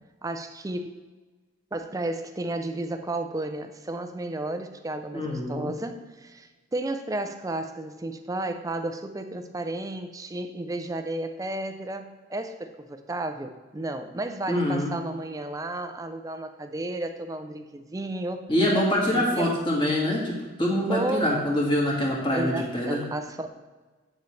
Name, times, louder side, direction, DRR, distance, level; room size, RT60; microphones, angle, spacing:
voice 1, 0.2-1.0 1.7-18.5 19.1-19.6 20.9-21.3 22.3-23.5, right 2 dB, 15° right, 8 dB, 0.4 m, -33 dB
voice 2, 5.1-5.7 14.5-14.9 18.5-23.0, left 1 dB, 25° left, -3 dB, 1.7 m, -25 dB
8.2 x 6.7 x 3.2 m, 1.3 s
head